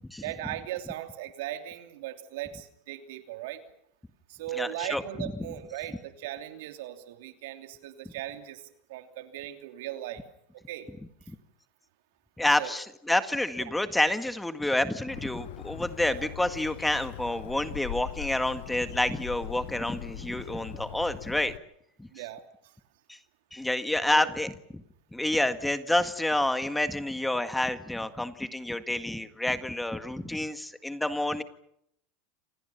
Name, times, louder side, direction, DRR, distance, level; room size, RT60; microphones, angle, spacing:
voice 1, 0.2-3.6 4.3-8.6 8.9-10.2 10.5-10.9 12.6-12.7 22.1-22.4 24.1-24.3, right 13 dB, 70° right, 7 dB, 3.0 m, -38 dB
voice 2, 4.5-5.3 12.4-21.5 22.0-22.1 23.1-23.2 23.5-24.8 25.1-31.4, left 1 dB, 5° left, 10 dB, 1.8 m, -29 dB
Bird, 15.1-21.6, left 14 dB, 70° left, 1.3 m, -41 dB
29.5 x 27.0 x 5.8 m, 0.72 s
hypercardioid pair, 95°, 0 cm